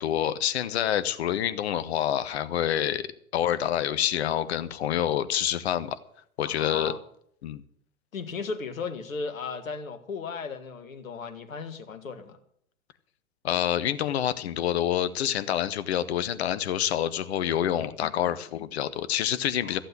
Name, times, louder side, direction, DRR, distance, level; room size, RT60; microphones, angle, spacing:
voice 1, 0.0-3.1 3.3-6.0 6.4-6.9 7.4-7.6 13.4-19.8, left 10 dB, 50° left, 14 dB, 1.1 m, -27 dB
voice 2, 6.4-7.0 8.1-12.4 19.6-19.8, left 4 dB, 65° left, 10 dB, 1.9 m, -36 dB
15.0 x 7.9 x 9.0 m, 0.66 s
figure-of-eight pair, 110°, 43 cm